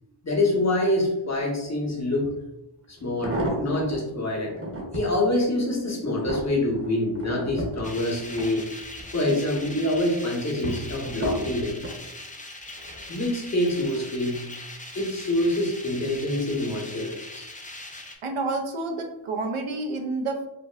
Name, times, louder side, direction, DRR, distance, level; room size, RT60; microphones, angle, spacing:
voice 1, 0.2-2.3 2.9-4.5 4.9-8.7 9.1-11.8 13.1-14.4 14.9-17.5, left 1 dB, 35° left, -2 dB, 1.0 m, -26 dB
sound 1, 2.2-2.3 3.0-4.0 4.5-5.2 5.7-9.1 9.5-10.0 10.6-12.0 12.8-13.1 13.4-13.5, right 1 dB, 30° right, 0.8 m, -33 dB
sound 2, 7.8-18.2, left 2 dB, 15° left, 0.5 m, -41 dB
voice 2, 18.2-20.5, right 3 dB, 90° right, 2 dB, 0.6 m, -29 dB
5.1 x 2.1 x 2.3 m, 0.91 s
wide cardioid pair, 65°, 49 cm